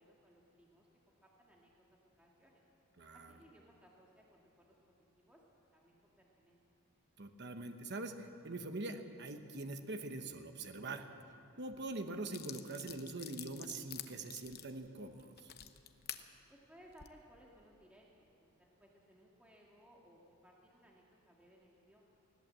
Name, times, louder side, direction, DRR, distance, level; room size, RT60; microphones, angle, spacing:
voice 1, 0.0-2.6 3.1-4.8 5.2-5.4 5.7-6.6 16.5-22.1, equal, 5° right, -3 dB, 1.9 m, -63 dB
voice 2, 3.0-3.3 7.2-11.1 11.6-15.5, right 2 dB, 50° right, 6 dB, 1.2 m, -43 dB
sound 1, 11.7-11.8 12.3-16.2 16.8-17.1, left 11 dB, 45° left, 1.0 m, -48 dB
20.5 x 17.0 x 7.6 m, 2.6 s
head